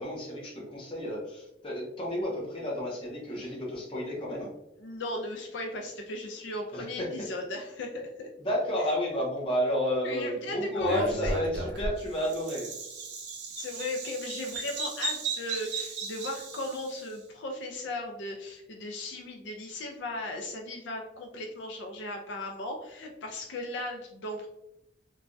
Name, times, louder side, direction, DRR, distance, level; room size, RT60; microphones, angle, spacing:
voice 1, 0.0-4.5 6.7-7.1 8.4-12.7, equal, 30° left, -3 dB, 0.7 m, -31 dB
voice 2, 4.8-8.3 10.0-11.4 13.6-24.5, left 1 dB, 70° left, 2 dB, 0.4 m, -37 dB
Bird vocalization bird call bird song, 10.8-17.1, right 3 dB, 65° right, 0.6 m, -36 dB
3.2 x 2.2 x 2.5 m, 0.85 s
head